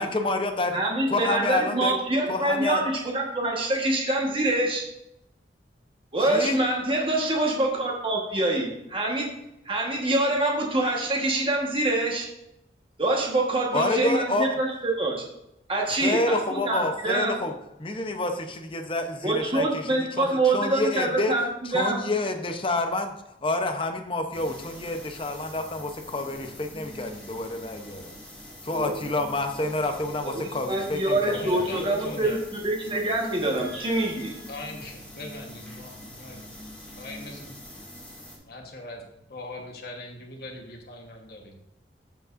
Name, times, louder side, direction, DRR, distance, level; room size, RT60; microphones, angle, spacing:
voice 1, 0.0-0.8 1.1-2.0 2.3-2.8 6.2-6.6 13.7-14.5 16.0-17.5 17.8-20.3 20.5-21.3 21.6-23.1 23.4-28.1 28.6-32.2, left 2 dB, 30° left, 5 dB, 0.8 m, -28 dB
voice 2, 0.7-4.8 6.1-9.3 9.6-12.3 13.0-15.1 15.7-17.3 19.2-22.0 28.7-28.9 30.2-30.4 30.7-32.4 32.6-34.3, right 2 dB, 30° right, -1 dB, 1.4 m, -25 dB
sound 1, 24.3-38.4, left 1 dB, 5° left, 2.2 m, -44 dB
voice 3, 31.3-32.4 33.6-36.4 37.0-37.5 38.5-41.6, left 2 dB, 55° left, 1 dB, 1.3 m, -41 dB
14.5 x 5.2 x 2.6 m, 0.84 s
head